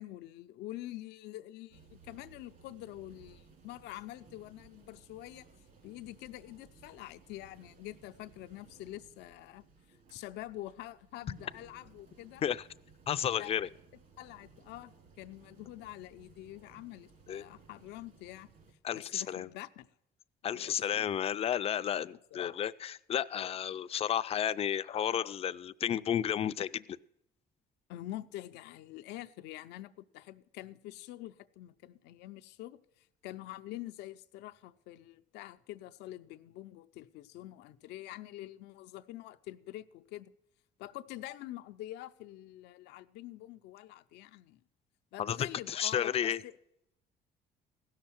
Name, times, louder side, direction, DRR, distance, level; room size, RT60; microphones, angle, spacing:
voice 1, 0.0-5.4 5.8-9.6 10.1-12.4 13.4-13.5 14.2-18.5 18.9-19.9 20.5-21.1 22.0-22.5 27.9-40.3 40.8-44.6 45.1-46.5, left 15 dB, 90° left, 0.6 m, -46 dB
sound 1, 1.7-18.7, right 4 dB, 55° right, 2.3 m, -60 dB
voice 2, 13.1-13.7 17.3-17.4 18.8-19.5 20.4-27.0 45.2-45.4 45.7-46.4, left 9 dB, 35° left, 0.4 m, -32 dB
16.0 x 6.5 x 5.9 m
cardioid pair, 110°, 17 cm